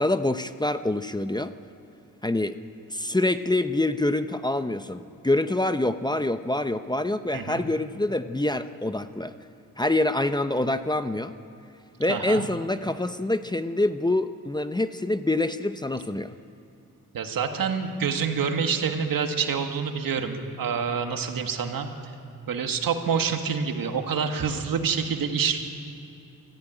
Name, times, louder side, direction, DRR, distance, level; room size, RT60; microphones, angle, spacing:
voice 1, 0.0-1.5 2.2-2.6 2.9-9.3 9.8-11.3 12.0-16.3, left 2 dB, 10° left, 10 dB, 0.7 m, -26 dB
voice 2, 7.3-7.6 12.1-12.5 17.1-21.9 22.5-25.6, right 6 dB, 80° right, 5 dB, 1.8 m, -27 dB
23.0 x 14.5 x 9.1 m, 2.8 s
cardioid pair, 95°, 34 cm